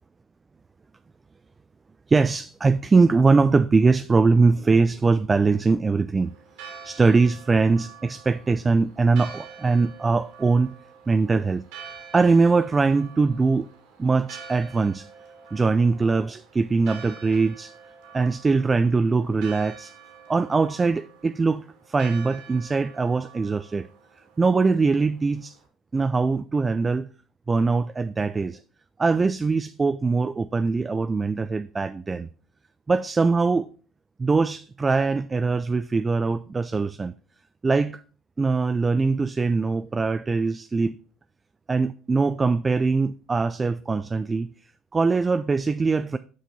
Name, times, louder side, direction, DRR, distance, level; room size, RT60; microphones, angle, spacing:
voice 1, 2.1-6.3 6.8-10.7 11.1-11.6 12.1-13.7 14.0-15.1 15.5-17.7 18.1-19.9 20.3-23.9 24.4-25.6 25.9-27.1 27.5-28.6 29.0-32.3 32.9-33.7 34.2-37.1 37.6-38.0 38.4-41.0 41.7-44.5 44.9-46.2, right 4 dB, 25° right, 0.3 m, -22 dB
Church bell, 6.2-25.6, right 6 dB, 80° right, 1.8 m, -47 dB
6.3 x 5.5 x 4.0 m
hypercardioid pair, 75°, 0 cm